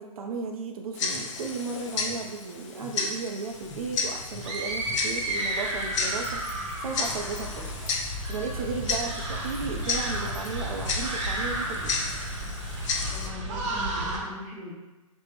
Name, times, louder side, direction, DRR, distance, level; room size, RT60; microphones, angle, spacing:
voice 1, 0.0-7.7 8.3-12.0, right 4 dB, 85° right, 2 dB, 0.4 m, -35 dB
Tick-tock, 0.9-13.3, left 4 dB, 60° left, 0.5 m, -33 dB
sound 1, 3.6-14.2, right 1 dB, 55° right, 0.8 m, -33 dB
sound 2, 6.2-11.7 12.1-12.2, equal, 10° left, 0.9 m, -52 dB
voice 2, 13.1-14.7, left 2 dB, 25° right, -4 dB, 0.9 m, -40 dB
3.4 x 2.0 x 3.2 m, 1.1 s
hypercardioid pair, 130°, 18 cm